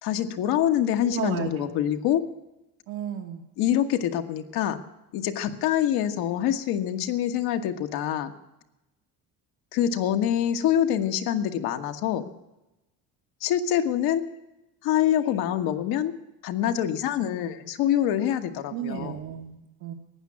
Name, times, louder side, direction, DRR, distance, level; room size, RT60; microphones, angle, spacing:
voice 1, 0.0-2.3 3.6-4.8 5.1-8.3 9.7-12.3 13.4-14.2 14.8-16.1 16.4-19.2, left 10 dB, 85° left, 6 dB, 1.4 m, -25 dB
voice 2, 1.1-1.7 2.9-3.4 18.7-19.9, right 9 dB, 85° right, 0 dB, 1.6 m, -33 dB
15.0 x 9.6 x 10.0 m, 0.96 s
cardioid pair, 135°, 36 cm